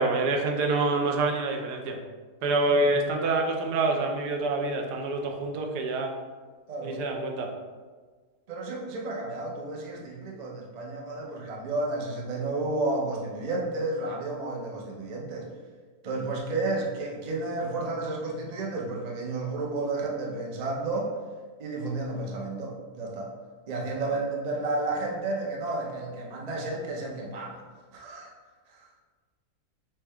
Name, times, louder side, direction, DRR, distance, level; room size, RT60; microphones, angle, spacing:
voice 1, 0.0-2.0 2.4-6.1 6.8-7.5, right 2 dB, 90° right, 2 dB, 1.2 m, -26 dB
voice 2, 6.7-7.0 8.5-15.5 16.0-21.1 21.6-23.3 23.7-27.6 27.9-28.3 28.7-28.9, right 2 dB, 60° right, -1 dB, 0.4 m, -32 dB
5.8 x 2.3 x 3.5 m, 1.4 s
omnidirectional pair, 1.7 m